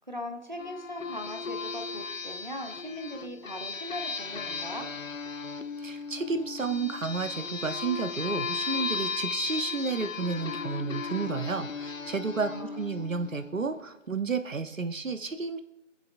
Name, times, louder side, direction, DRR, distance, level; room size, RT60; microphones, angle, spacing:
voice 1, 0.1-4.9 12.5-13.1, equal, 35° right, 4 dB, 0.8 m, -39 dB
sound 1, 0.6-13.8, left 5 dB, 80° left, 0.6 m, -36 dB
voice 2, 5.8-15.6, right 4 dB, 80° right, 9 dB, 0.8 m, -31 dB
20.5 x 7.6 x 2.5 m, 0.92 s
figure-of-eight pair, 175°, 38 cm